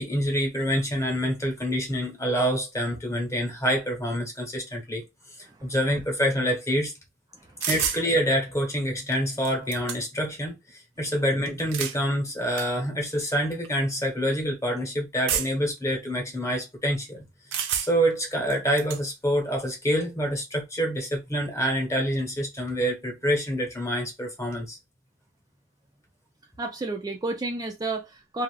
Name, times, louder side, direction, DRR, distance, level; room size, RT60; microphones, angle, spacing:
voice 1, 0.0-5.0 5.4-6.9 7.7-17.2 17.9-24.8, equal, 15° left, 1.0 m, -26 dB
sound 1, 7.6-8.0 9.1-9.2 9.4-10.3 11.5-12.0 12.6-12.7 13.5-13.7 15.3-15.7 17.5-18.1 18.5-19.0, right 8 dB, 75° right, 0.6 m, -29 dB
voice 2, 26.6-28.4, right 2 dB, 20° right, 0.3 m, -31 dB
2.7 x 2.4 x 3.2 m
head